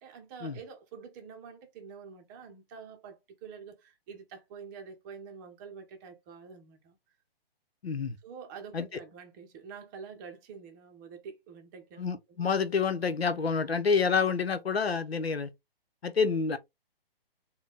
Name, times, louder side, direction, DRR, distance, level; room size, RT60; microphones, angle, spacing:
voice 1, 0.0-7.0 8.2-12.4, right 6 dB, 20° right, 0.7 m, -47 dB
voice 2, 7.8-8.2 8.7-8.9 12.0-15.5 16.0-16.6, left 5 dB, 90° left, 0.9 m, -28 dB
4.0 x 2.3 x 3.5 m
hypercardioid pair, 145°, 30 cm